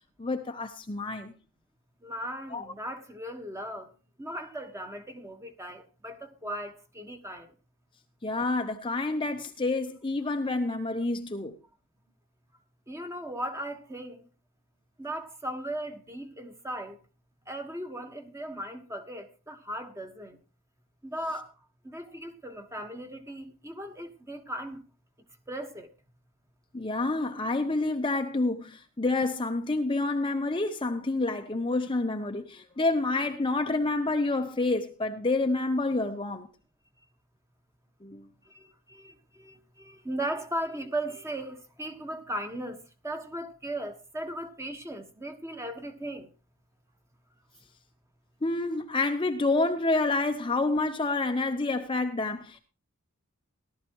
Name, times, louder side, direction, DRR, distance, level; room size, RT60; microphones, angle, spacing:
voice 1, 0.2-1.3 2.5-2.7 8.2-11.5 26.7-36.5 38.0-38.3 48.4-52.6, left 2 dB, 25° left, 0.8 m, -28 dB
voice 2, 2.0-3.9 4.2-7.5 12.9-14.2 15.0-17.0 17.5-20.4 21.0-21.5 21.8-24.8 25.5-25.9 38.4-42.8 43.0-46.3, right 1 dB, 15° right, 1.4 m, -37 dB
17.5 x 12.5 x 3.0 m
head